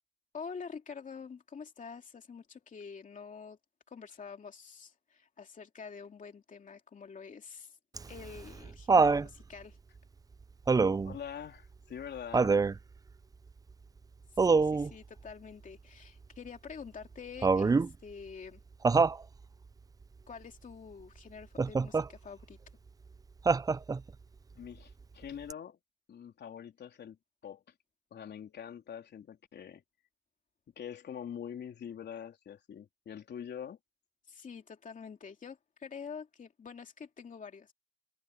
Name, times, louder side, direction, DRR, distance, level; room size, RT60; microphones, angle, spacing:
voice 1, 0.3-3.6 3.9-7.8 8.1-9.8 14.3-18.6 20.3-22.6 34.2-37.7, left 6 dB, 40° left, 2.7 m, -47 dB
Laughter, 8.0-9.3 10.7-11.2 12.3-12.8 14.4-14.9 17.4-17.9 18.8-19.2 21.6-22.1 23.5-24.1 25.5-25.6, right 4 dB, 20° right, 0.4 m, -25 dB
voice 2, 11.0-12.6 24.5-25.8 26.1-27.2 27.4-27.6 28.1-29.8 30.8-33.8, left 8 dB, 60° left, 3.5 m, -44 dB
cardioid pair, 90°, 20 cm